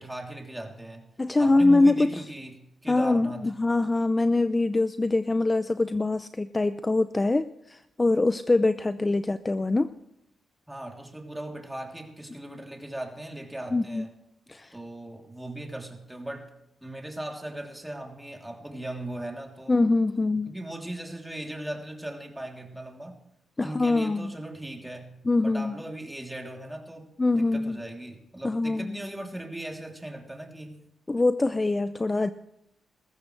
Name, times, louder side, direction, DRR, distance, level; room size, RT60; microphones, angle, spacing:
voice 1, 0.0-1.1 1.4-3.5 10.7-14.1 14.7-16.5 16.8-19.8 20.5-23.2 23.6-30.8, right 1 dB, 10° right, 1 dB, 3.1 m, -38 dB
voice 2, 1.2-2.2 2.9-9.9 13.7-14.0 14.5-14.7 19.7-20.5 23.6-24.3 25.3-25.8 27.2-27.8 28.4-29.0 31.1-32.3, left 2 dB, 25° left, 12 dB, 0.5 m, -24 dB
20.0 x 15.0 x 3.3 m, 0.81 s
cardioid pair, 75°, 0 cm